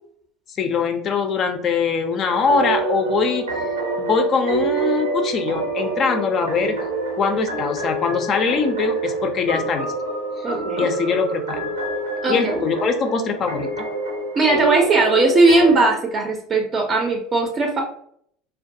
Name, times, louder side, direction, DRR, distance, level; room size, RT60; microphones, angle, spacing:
voice 1, 0.6-3.5 4.0-6.8 7.2-9.9 10.4-10.5 10.8-11.6 12.3-13.7, left 5 dB, 45° left, 6 dB, 0.4 m, -22 dB
sound 1, 2.3-15.8, right 3 dB, 85° right, 0.6 m, -26 dB
voice 2, 10.4-10.9 12.2-12.6 14.3-17.8, right 3 dB, 35° right, 1 dB, 0.5 m, -18 dB
2.2 x 2.2 x 2.6 m, 0.64 s
hypercardioid pair, 75°, 0 cm